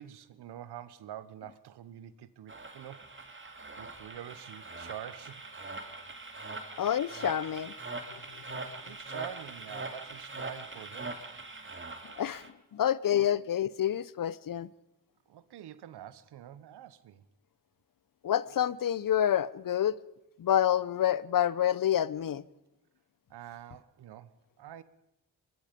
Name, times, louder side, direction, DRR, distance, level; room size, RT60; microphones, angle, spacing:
voice 1, 0.0-3.4 3.8-5.4 8.8-11.3 13.1-13.2 15.3-17.2 23.3-24.8, right 11 dB, 80° right, 1.1 m, -46 dB
sound 1, 2.5-12.5, right 3 dB, 30° right, 2.6 m, -42 dB
voice 2, 6.8-7.7 8.1-8.2 8.5-8.6 12.0-12.4 12.7-14.7 18.2-19.9 20.4-22.4, left 10 dB, 60° left, 0.8 m, -28 dB
23.0 x 22.0 x 5.3 m
cardioid pair, 60°, 39 cm